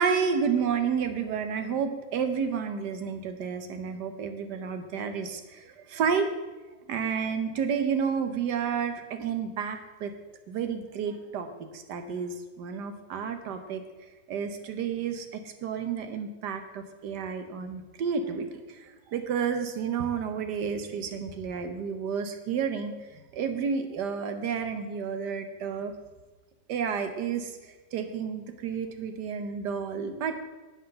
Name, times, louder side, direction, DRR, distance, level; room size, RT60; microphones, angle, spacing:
voice 1, 0.0-6.3 6.9-10.1 10.5-11.5 11.7-13.8 14.3-25.9 26.7-27.6 27.9-30.3, right 6 dB, 70° right, 8 dB, 1.4 m, -31 dB
8.0 x 5.9 x 6.7 m, 1.2 s
omnidirectional pair, 2.0 m